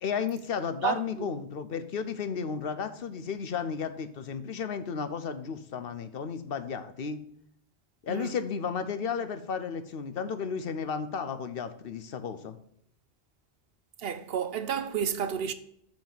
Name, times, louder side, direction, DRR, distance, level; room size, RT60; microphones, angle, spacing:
voice 1, 0.0-7.2 8.0-12.6, left 6 dB, 60° left, 0.9 m, -33 dB
voice 2, 0.8-1.3 8.1-8.3 14.0-15.5, right 8 dB, 65° right, 0.8 m, -31 dB
5.8 x 5.2 x 6.7 m
omnidirectional pair, 1.1 m